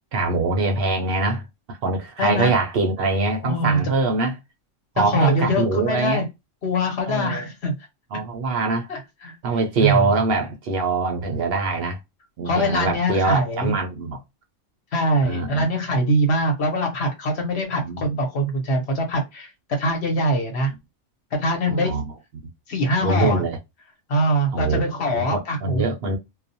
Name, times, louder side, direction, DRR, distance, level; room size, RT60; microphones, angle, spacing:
voice 1, 0.1-4.3 5.0-6.2 7.1-7.4 8.1-8.9 9.4-12.0 12.4-14.2 15.2-15.6 17.8-18.1 21.7-22.1 23.0-23.6 24.5-24.8 25.1-26.2, right 3 dB, 65° right, 0.6 m, -23 dB
voice 2, 2.2-2.5 3.4-3.8 5.0-6.3 6.6-7.7 8.9-9.4 9.8-10.1 12.4-13.7 14.9-19.5 19.8-20.7 21.4-21.9 22.7-23.4 24.1-25.8, equal, 55° left, 1.0 m, -23 dB
2.3 x 2.1 x 2.6 m
omnidirectional pair, 1.4 m